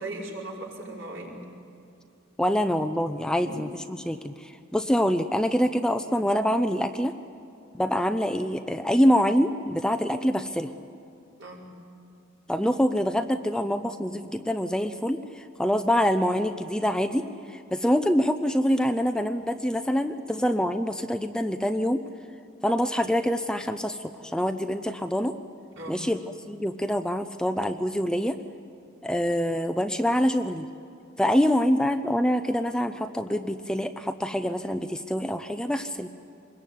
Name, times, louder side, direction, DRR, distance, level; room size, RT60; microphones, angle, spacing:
voice 1, 0.0-1.3 3.4-3.5 11.4-11.7 25.8-26.0, right 2 dB, 65° right, -2 dB, 5.4 m, -38 dB
voice 2, 2.4-7.1 7.7-10.7 12.5-22.0 22.6-25.3 25.9-26.2 26.5-28.4 29.0-30.7 31.2-36.1, equal, 5° left, 8 dB, 0.6 m, -25 dB
26.0 x 21.5 x 9.3 m, 2.7 s
head